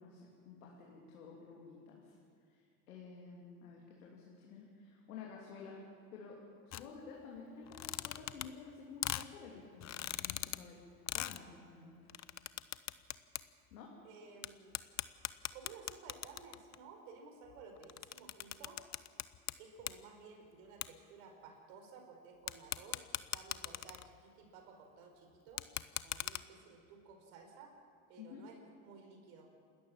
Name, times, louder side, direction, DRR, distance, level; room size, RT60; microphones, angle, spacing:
voice 1, 0.0-2.1 2.5-5.8 6.1-10.8 11.1-12.0 13.7-13.9 28.2-28.4, left 5 dB, 90° left, -2 dB, 3.1 m, -52 dB
sound 1, 6.7-6.8 7.6-8.7 9.0-9.3 9.8-10.6 11.1-11.4 12.1-13.4 13.7-13.8 14.4-14.5 14.7-16.8 17.5-19.5 19.8-20.0 20.8-20.9 22.5-24.2 25.5-26.4, left 13 dB, 40° left, 0.8 m, -40 dB
voice 2, 14.0-14.8 15.5-18.8 19.6-25.6 26.0-27.7 28.1-29.5, right 4 dB, 75° right, 3 dB, 4.9 m, -55 dB
29.0 x 13.0 x 7.4 m, 2.4 s
hypercardioid pair, 80°, 42 cm